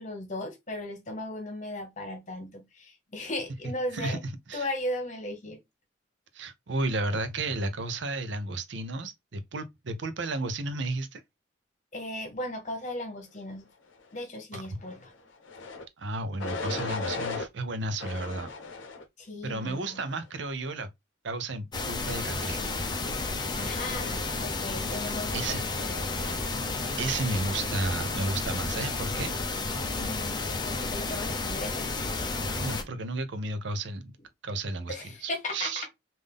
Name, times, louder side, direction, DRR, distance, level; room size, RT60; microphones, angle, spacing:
voice 1, 0.0-4.2 4.5-5.6 11.9-13.7 14.1-15.1 19.2-20.0 23.5-26.4 29.9-31.7 34.9-35.9, left 1 dB, 40° left, 1.1 m, -37 dB
voice 2, 6.3-11.2 14.5-14.6 16.0-18.5 19.4-20.9 21.2-22.7 25.3-25.6 27.0-29.3 32.6-34.1 34.4-34.9 35.2-35.9, right 2 dB, 70° right, 0.6 m, -32 dB
sound 1, 15.4-15.8 16.4-17.5 18.0-19.0 19.6-20.0, left 3 dB, 80° left, 0.7 m, -35 dB
sound 2, 21.7-32.8, left 3 dB, 20° left, 0.5 m, -32 dB
3.6 x 2.6 x 3.4 m
head